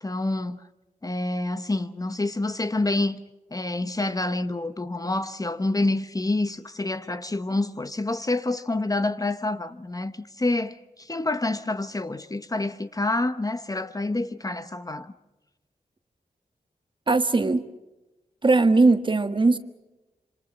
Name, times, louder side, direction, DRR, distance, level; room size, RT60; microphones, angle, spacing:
voice 1, 0.0-0.6 1.0-3.2 3.5-15.1, left 2 dB, 25° left, 0.9 m, -27 dB
voice 2, 17.1-17.7 18.4-19.6, right 3 dB, 35° right, 1.4 m, -19 dB
26.5 x 26.0 x 6.2 m
wide cardioid pair, 95°, 14 cm